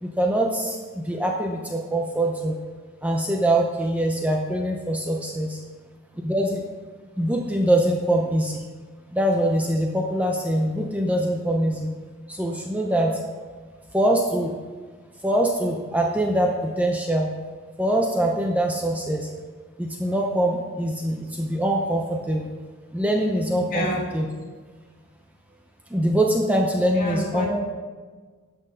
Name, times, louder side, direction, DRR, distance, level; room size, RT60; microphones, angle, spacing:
voice 1, 0.0-2.5 3.0-5.6 6.2-6.6 7.2-8.6 9.1-11.9 12.3-13.2 13.9-14.5 15.2-17.3 17.8-19.3 19.8-22.5 22.9-24.3 25.9-27.6, right 1 dB, 5° right, 1 dB, 0.7 m, -23 dB
voice 2, 23.7-24.0 26.9-27.6, equal, 40° left, -3 dB, 2.5 m, -28 dB
12.0 x 6.2 x 5.2 m, 1.5 s
head